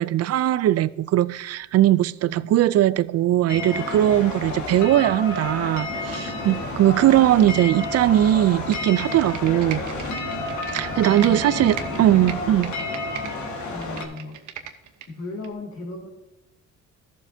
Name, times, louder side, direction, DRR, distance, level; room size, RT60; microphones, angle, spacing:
voice 1, 0.0-9.8 10.7-12.7, right 13 dB, 55° right, 0.4 m, -20 dB
voice 2, 2.2-2.5 6.3-6.8 11.0-12.5 13.7-14.4 15.1-16.1, left 2 dB, 55° left, 2.3 m, -37 dB
sound 1, 3.5-14.0, left 2 dB, 70° left, 1.7 m, -30 dB
Computer keyboard, 8.6-11.3 11.7-13.3 13.7-15.1 15.4-15.5, right 9 dB, 75° right, 1.0 m, -38 dB
14.0 x 7.3 x 2.7 m
cardioid pair, 90°, 30 cm